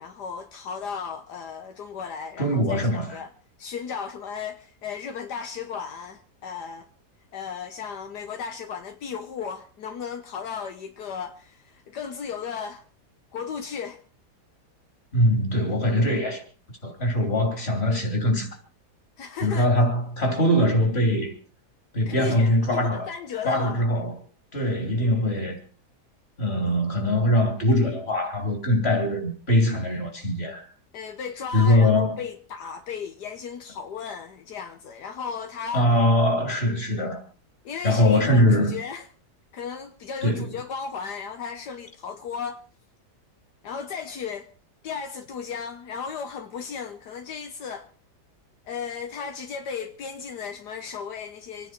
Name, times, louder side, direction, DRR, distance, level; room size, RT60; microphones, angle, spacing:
voice 1, 0.0-3.3 3.6-6.9 7.3-12.8 13.3-14.0 19.2-19.7 22.1-23.8 30.9-35.9 37.7-39.1 39.5-42.6 43.6-44.5 44.8-47.9 48.7-51.7, left 6 dB, 80° left, 1.6 m, -35 dB
voice 2, 2.4-3.2 15.1-16.4 16.8-18.5 19.4-21.3 21.9-23.1 23.4-24.2 24.5-25.6 26.4-30.6 31.5-32.2 35.7-37.2 37.8-38.8 40.2-40.5, left 1 dB, 40° left, 3.6 m, -22 dB
26.5 x 10.0 x 4.5 m
omnidirectional pair, 1.7 m